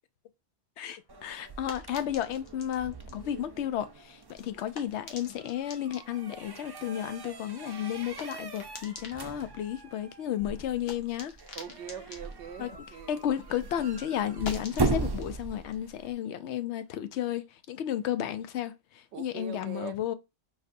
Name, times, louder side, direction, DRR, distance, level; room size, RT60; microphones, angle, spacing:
voice 1, 0.8-11.3 12.6-12.7 13.1-20.1, left 10 dB, 90° left, 0.9 m, -33 dB
sound 1, 0.8-13.6 13.9-17.1, left 4 dB, 70° left, 1.1 m, -49 dB
sound 2, 1.1-16.1, right 3 dB, 35° right, 0.4 m, -38 dB
voice 2, 11.6-13.2 13.5-13.7 19.1-20.1, right 7 dB, 85° right, 0.9 m, -42 dB
4.1 x 2.7 x 2.5 m
omnidirectional pair, 1.1 m